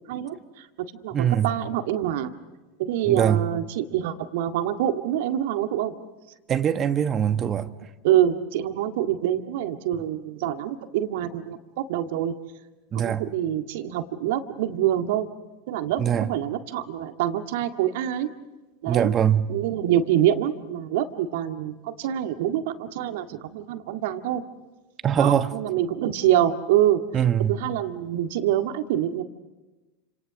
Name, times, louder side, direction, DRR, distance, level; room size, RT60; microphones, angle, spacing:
voice 1, 0.1-0.7 1.0-2.3 2.8-5.9 8.0-12.3 12.9-15.3 15.7-18.3 18.8-19.1 19.5-24.4 25.2-27.0 27.5-29.2, right 11 dB, 60° right, 1.9 m, -25 dB
voice 2, 1.1-1.5 3.0-3.4 6.5-7.7 12.9-13.2 16.0-16.3 18.9-19.5 25.0-25.5 27.1-27.6, right 9 dB, 30° right, 1.4 m, -22 dB
29.5 x 27.0 x 6.3 m
figure-of-eight pair, 90°, 0 cm